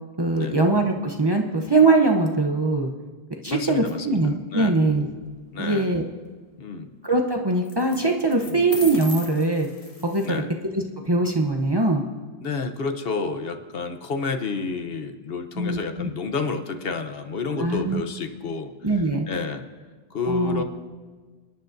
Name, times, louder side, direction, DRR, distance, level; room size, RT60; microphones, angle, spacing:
voice 1, 0.2-2.9 3.4-5.1 5.6-6.0 7.0-9.7 10.0-10.4 10.7-12.0 15.6-16.1 17.5-18.0 18.8-19.3 20.3-20.6, right 2 dB, 25° right, 2 dB, 0.7 m, -22 dB
voice 2, 3.4-4.2 4.5-4.7 5.5-5.9 6.6-6.9 8.4-8.6 10.2-10.5 12.4-18.7 19.3-19.6 20.1-20.6, left 4 dB, 65° left, 7 dB, 1.0 m, -30 dB
sound 1, 5.0-5.3 7.6-8.0 8.3-10.4, left 2 dB, 35° left, 1.1 m, -38 dB
27.0 x 10.5 x 2.6 m, 1.4 s
omnidirectional pair, 1.1 m